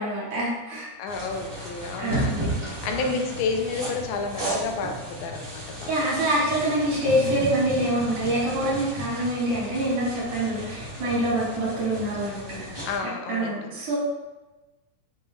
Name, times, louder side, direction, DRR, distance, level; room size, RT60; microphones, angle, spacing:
voice 1, 0.0-0.9 2.0-2.4 3.0-3.3 5.9-12.9 13.3-14.0, right 1 dB, 85° right, -5 dB, 2.9 m, -26 dB
voice 2, 1.0-4.9 5.2-5.9 12.9-13.7, left 4 dB, 85° left, 3 dB, 2.0 m, -30 dB
sound 1, 1.1-13.0, right 1 dB, 60° right, 0.5 m, -34 dB
6.4 x 2.3 x 3.0 m, 1.1 s
omnidirectional pair, 3.4 m